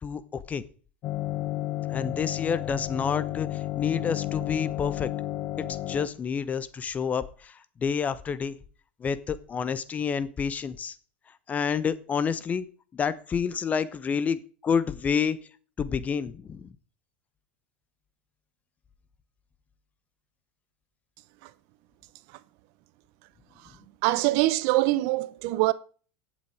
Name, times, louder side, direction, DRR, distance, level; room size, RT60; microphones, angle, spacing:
voice 1, 0.0-0.6 1.9-5.1 5.6-8.6 9.0-11.0 11.5-12.7 12.9-15.4 15.8-16.7, left 6 dB, 25° left, 1.1 m, -29 dB
sound 1, 1.0-6.1, left 15 dB, 50° left, 0.8 m, -32 dB
voice 2, 24.0-25.7, right 18 dB, 60° right, 0.8 m, -24 dB
17.0 x 7.5 x 4.9 m
hypercardioid pair, 105°, 6 cm